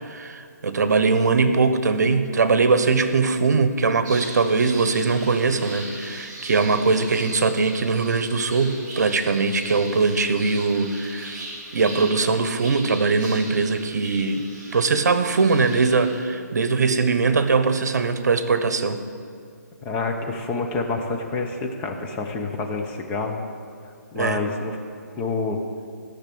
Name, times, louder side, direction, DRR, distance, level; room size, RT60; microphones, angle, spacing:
voice 1, 0.1-11.4 11.7-14.4 14.7-19.0 24.1-24.4, right 4 dB, 70° right, 10 dB, 1.1 m, -21 dB
sound 1, 4.0-16.2, right 2 dB, 20° right, 3.5 m, -39 dB
voice 2, 19.8-23.4 24.1-24.8 25.2-25.7, left 3 dB, 15° left, 3 dB, 0.8 m, -27 dB
15.5 x 6.6 x 8.5 m, 2.4 s
hypercardioid pair, 160°, 9 cm